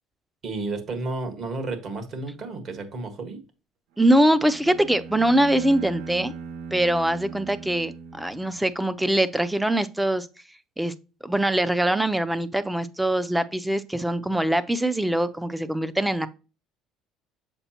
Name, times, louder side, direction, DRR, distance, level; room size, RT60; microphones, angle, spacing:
voice 1, 0.4-3.4, right 3 dB, 50° right, 1.6 m, -32 dB
voice 2, 4.0-6.3 6.7-10.3 10.8-10.9 11.2-16.3, right 1 dB, 5° right, 0.5 m, -23 dB
Bowed string instrument, 4.1-8.9, right 5 dB, 80° right, 0.8 m, -39 dB
6.8 x 4.9 x 2.9 m
supercardioid pair, 95°, 0 cm